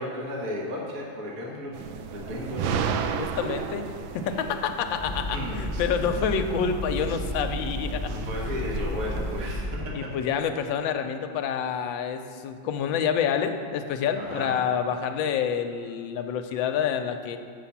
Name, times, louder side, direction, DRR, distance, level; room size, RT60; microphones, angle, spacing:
voice 1, 0.0-1.8 2.1-3.2 5.3-5.6 8.1-10.1 14.1-14.5, left 1 dB, 45° right, -2 dB, 1.6 m, -34 dB
sound 1, 1.7-9.5, right 6 dB, 75° right, 1.3 m, -34 dB
voice 2, 3.2-8.1 9.9-17.4, left 7 dB, 75° left, 7 dB, 1.3 m, -28 dB
sound 2, 5.0-10.0, left 1 dB, 10° left, 1.6 m, -33 dB
7.0 x 6.9 x 7.1 m, 2.1 s
omnidirectional pair, 2.2 m